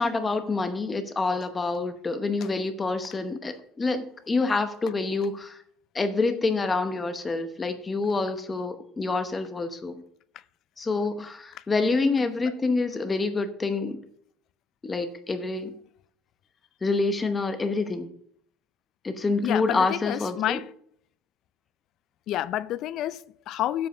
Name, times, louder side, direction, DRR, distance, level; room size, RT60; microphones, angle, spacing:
voice 1, 0.0-5.6 5.9-10.0 10.8-14.0 14.8-15.7 16.8-18.1 19.0-20.6, left 3 dB, 15° left, 0.8 m, -27 dB
voice 2, 19.4-20.7 22.3-23.9, left 13 dB, 45° left, 0.4 m, -29 dB
7.8 x 7.5 x 5.5 m
cardioid pair, 160°, 0 cm